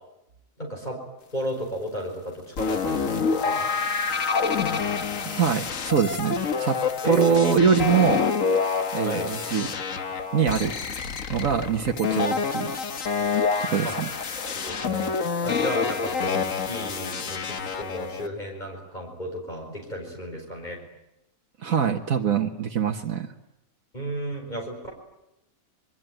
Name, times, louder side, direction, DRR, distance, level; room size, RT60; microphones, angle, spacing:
voice 1, 0.6-1.0 1.3-3.7 7.0-7.6 9.0-9.3 13.8-13.9 14.4-15.1 15.4-20.8 23.9-24.9, equal, 30° left, 0 dB, 5.3 m, -33 dB
sound 1, 2.6-18.3, left 5 dB, 70° left, 1.8 m, -27 dB
voice 2, 5.2-6.8 7.0-8.2 8.9-9.7 10.3-10.7 11.3-12.8 13.7-14.1 21.6-23.3, right 7 dB, 75° right, 3 dB, 1.7 m, -23 dB
27.5 x 23.0 x 9.2 m, 0.88 s
omnidirectional pair, 1.4 m